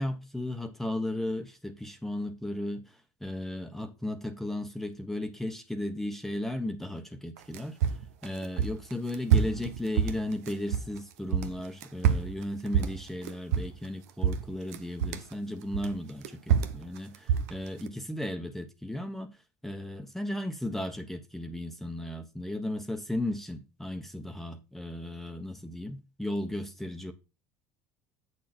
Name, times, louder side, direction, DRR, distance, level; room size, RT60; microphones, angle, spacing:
voice 1, 0.0-2.8 3.2-7.8 8.2-19.4 19.6-27.1, left 1 dB, 5° left, 1.1 m, -35 dB
sound 1, 7.4-11.0 11.3-13.9 14.2-15.3 15.7-17.9, right 8 dB, 90° right, 0.9 m, -27 dB
8.1 x 6.5 x 4.3 m
supercardioid pair, 105°, 8 cm